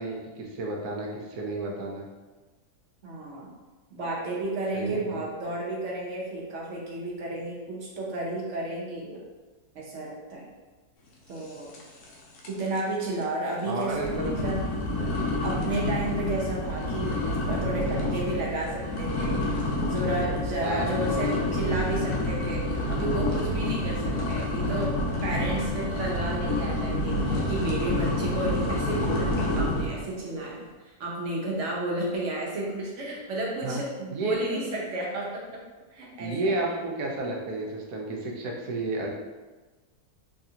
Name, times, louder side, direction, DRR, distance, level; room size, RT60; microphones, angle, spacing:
voice 1, 0.0-2.1 4.7-5.2 13.6-14.3 15.0-15.1 20.6-21.4 33.6-33.8 34.1-34.4 36.2-39.1, right 2 dB, 80° right, -1 dB, 1.2 m, -32 dB
voice 2, 3.0-3.5 3.9-9.2 9.7-10.4 11.3-11.7 12.4-14.6 15.4-17.2 17.5-19.6 19.9-24.9 25.2-35.6 35.9-36.6, right 2 dB, 60° right, -3 dB, 1.0 m, -32 dB
sound 1, 11.7-12.1 12.4-12.8 13.2-13.3 13.9-30.1, left 1 dB, 80° left, 1.1 m, -28 dB
3.3 x 2.4 x 2.7 m, 1.2 s
omnidirectional pair, 1.6 m